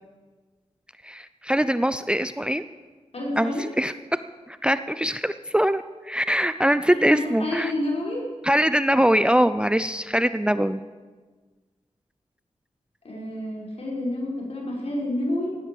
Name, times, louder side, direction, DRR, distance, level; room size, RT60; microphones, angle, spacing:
voice 1, 1.0-2.6 3.4-3.9 4.5-7.7 8.4-10.8, equal, 10° right, 13 dB, 0.5 m, -22 dB
voice 2, 3.1-3.7 6.9-8.3 13.0-15.5, left 1 dB, 60° left, -3 dB, 5.6 m, -29 dB
16.5 x 10.5 x 7.2 m, 1.4 s
wide cardioid pair, 75°, 12 cm